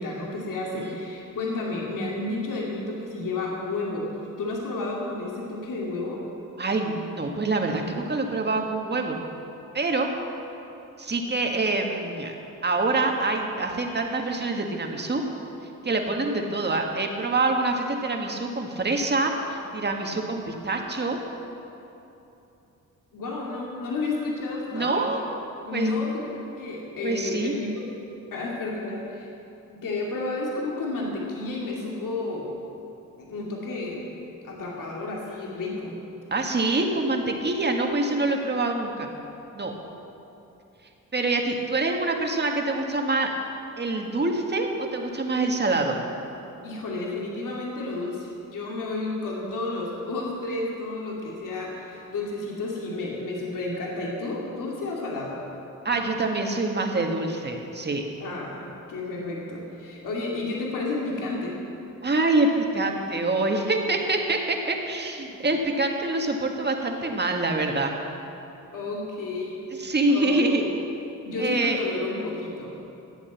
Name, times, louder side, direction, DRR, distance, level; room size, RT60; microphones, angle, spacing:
voice 1, 0.0-6.2 23.1-25.1 25.6-27.7 28.3-29.3 29.7-32.5 33.2-34.1 34.4-36.0 46.6-55.4 58.2-61.6 68.7-70.7 71.2-72.8, left 2 dB, 75° left, -3 dB, 2.4 m, -31 dB
voice 2, 6.6-9.2 9.7-10.1 11.0-12.3 12.6-15.2 15.8-21.2 24.7-25.2 25.7-25.9 27.0-27.5 36.3-39.1 39.5-39.7 41.1-43.3 43.8-46.0 55.9-58.0 62.0-67.9 69.7-70.6 71.4-71.8, right 2 dB, 30° right, 2 dB, 1.8 m, -25 dB
13.5 x 8.4 x 7.2 m, 2.8 s
cardioid pair, 75°, 33 cm